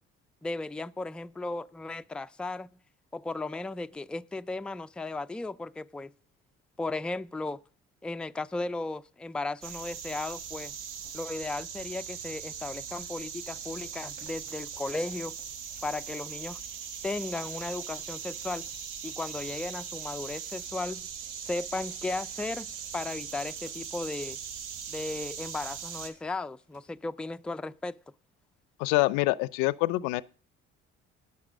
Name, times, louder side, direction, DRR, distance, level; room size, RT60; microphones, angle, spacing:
voice 1, 0.4-2.7 3.1-6.1 6.8-7.6 8.0-10.7 11.1-15.3 15.8-16.6 17.0-18.6 19.0-21.1 21.4-24.4 24.9-28.0, left 2 dB, 5° left, 0.4 m, -35 dB
sound 1, 9.6-26.1, right 7 dB, 80° right, 1.2 m, -40 dB
sound 2, 12.6-12.7 13.5-16.5 17.0-17.1 17.3-25.5 25.7-26.9, right 3 dB, 65° right, 6.1 m, -60 dB
voice 2, 28.8-30.2, left 19 dB, 85° left, 0.5 m, -25 dB
9.7 x 6.5 x 6.1 m
supercardioid pair, 65°, 30 cm